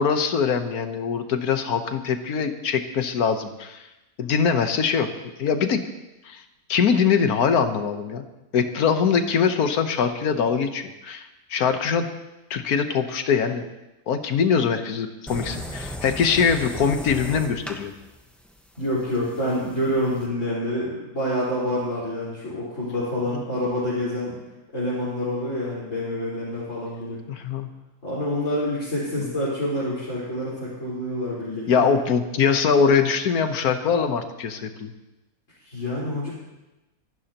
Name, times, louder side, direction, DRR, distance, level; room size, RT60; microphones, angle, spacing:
voice 1, 0.0-3.8 4.2-5.1 5.4-5.8 6.3-6.4 6.7-8.2 8.5-12.1 12.5-13.6 14.1-17.9 23.3-23.4 27.3-27.7 31.7-34.9, left 6 dB, 65° left, 7 dB, 1.5 m, -22 dB
sound 1, 15.3-20.3, equal, ahead, 1.1 m, -36 dB
voice 2, 18.8-24.4 24.7-27.2 28.0-32.0 35.6-36.3, equal, 45° left, -10 dB, 4.9 m, -27 dB
25.5 x 12.0 x 3.0 m, 1.0 s
omnidirectional pair, 1.8 m